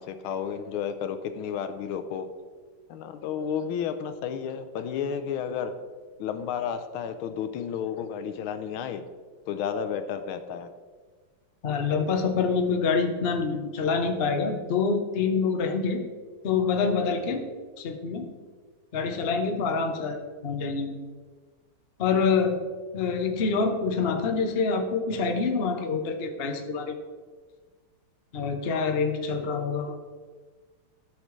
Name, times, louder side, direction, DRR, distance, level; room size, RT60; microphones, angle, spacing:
voice 1, 0.0-2.3 2.9-5.7 6.2-9.0 9.5-10.7, left 7 dB, 80° left, 9 dB, 1.5 m, -32 dB
voice 2, 11.6-16.0 16.4-17.4 17.8-18.3 18.9-21.0 22.0-22.6 22.9-27.0 28.3-30.0, left 5 dB, 55° left, 4 dB, 0.6 m, -26 dB
14.0 x 6.6 x 3.2 m, 1.5 s
omnidirectional pair, 2.4 m